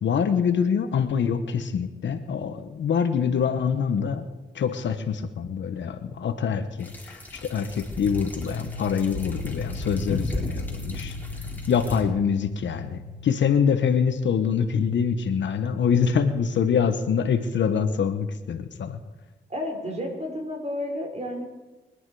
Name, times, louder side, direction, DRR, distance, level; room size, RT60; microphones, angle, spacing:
voice 1, 0.0-4.2 4.5-11.1 11.7-19.0, left 7 dB, 80° left, 9 dB, 1.3 m, -25 dB
sound 1, 6.8-12.0, left 1 dB, 10° left, 4.3 m, -34 dB
sound 2, 8.5-14.3, left 2 dB, 60° right, 6.5 m, -39 dB
voice 2, 19.5-21.4, left 1 dB, 35° right, 1 dB, 5.7 m, -31 dB
24.0 x 10.0 x 4.9 m, 1.1 s
cardioid pair, 55°, 19 cm